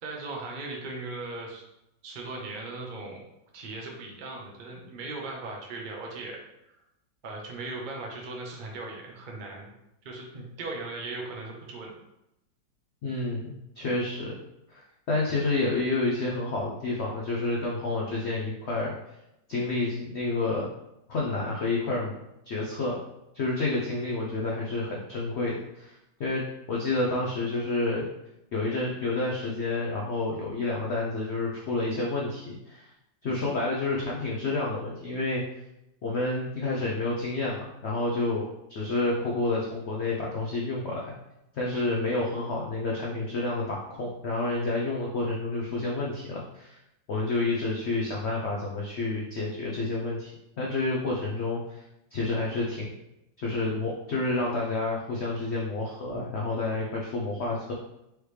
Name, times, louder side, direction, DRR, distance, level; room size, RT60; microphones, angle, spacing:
voice 1, 0.0-1.6 2.0-3.2 3.5-6.4 7.2-9.7 10.0-11.9 41.7-41.9, right 3 dB, 65° right, -1 dB, 0.5 m, -38 dB
voice 2, 13.0-14.4 14.7-14.8 15.1-18.9 19.5-20.7 21.1-22.1 22.5-23.0 23.3-28.1 28.5-32.9 33.2-35.4 36.0-41.1 41.5-46.8 47.1-50.3 50.6-51.8 52.1-53.0 53.4-57.7, left 2 dB, 80° left, -3 dB, 0.6 m, -29 dB
4.7 x 3.2 x 3.2 m, 0.87 s
omnidirectional pair, 2.0 m